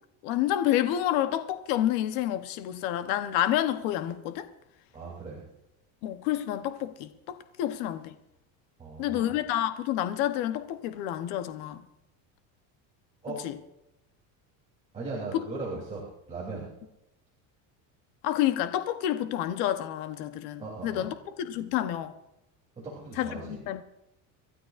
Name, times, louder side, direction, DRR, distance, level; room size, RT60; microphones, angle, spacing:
voice 1, 0.2-4.5 6.0-8.1 9.0-11.8 13.4-13.6 15.3-15.5 18.2-22.1 23.2-23.8, left 12 dB, 60° left, 1.0 m, -29 dB
voice 2, 4.9-5.4 8.8-9.3 13.2-13.4 14.9-16.7 20.6-21.1 22.8-23.6, right 3 dB, 15° right, 3.0 m, -38 dB
27.5 x 12.5 x 2.5 m
cardioid pair, 175°, 41 cm